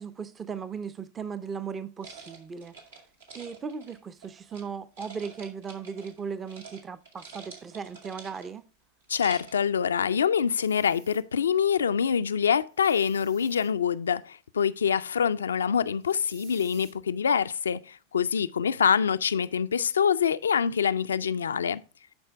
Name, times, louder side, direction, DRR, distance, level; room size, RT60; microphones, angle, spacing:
voice 1, 0.0-2.7 3.3-8.6, right 6 dB, 25° right, 0.5 m, -37 dB
sound 1, 2.0-4.6 5.0-6.2 6.5-6.8 7.1-8.6 9.0-9.6, right 5 dB, 85° right, 1.9 m, -47 dB
voice 2, 9.1-21.8, left 7 dB, 85° left, 0.3 m, -25 dB
sound 2, 10.5-11.2 12.7-13.7 16.0-16.9, right 6 dB, 70° right, 2.3 m, -54 dB
11.5 x 4.4 x 3.4 m
hypercardioid pair, 100°, 0 cm